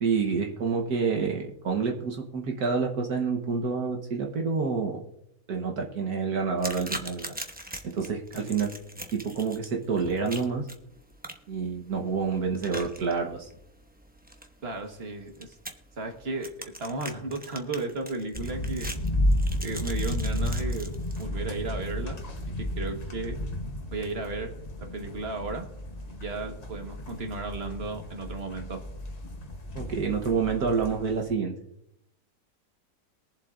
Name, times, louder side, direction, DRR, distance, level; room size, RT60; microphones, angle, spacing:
voice 1, 0.0-5.0 5.5-7.3 7.8-8.7 9.1-10.6 11.5-13.5 29.7-31.5, right 5 dB, 65° right, 2 dB, 1.6 m, -28 dB
sound 1, 6.6-21.2, right 1 dB, 10° right, 0.4 m, -42 dB
voice 2, 14.6-15.6 16.0-16.5 16.8-18.9 19.6-22.2 22.6-23.4 23.9-24.5 24.8-25.6 26.1-28.8, right 3 dB, 40° right, 4 dB, 1.5 m, -34 dB
sound 2, 18.3-31.3, left 1 dB, 30° left, 0.9 m, -32 dB
22.5 x 7.5 x 2.5 m, 0.79 s
omnidirectional pair, 1.8 m